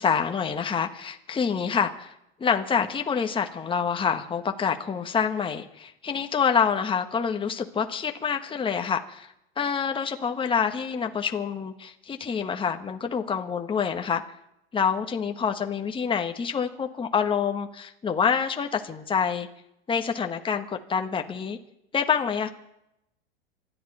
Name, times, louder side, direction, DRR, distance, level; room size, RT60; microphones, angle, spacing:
voice 1, 0.0-2.1 2.4-14.2 14.7-19.5 19.9-21.6 21.9-22.5, left 6 dB, 15° left, 5 dB, 1.5 m, -27 dB
26.5 x 11.0 x 4.3 m, 0.81 s
hypercardioid pair, 95°, 29 cm